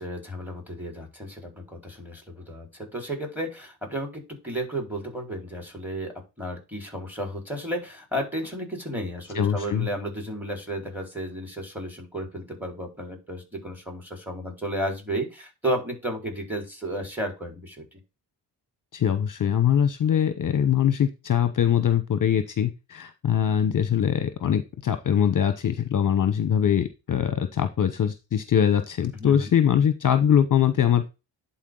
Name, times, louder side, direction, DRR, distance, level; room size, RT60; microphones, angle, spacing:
voice 1, 0.0-18.0 29.1-29.5, right 1 dB, 5° right, 2 dB, 4.4 m, -33 dB
voice 2, 9.3-9.9 18.9-31.1, left 9 dB, 45° left, 11 dB, 0.8 m, -22 dB
10.5 x 4.4 x 3.8 m, 0.27 s
supercardioid pair, 50°, 44 cm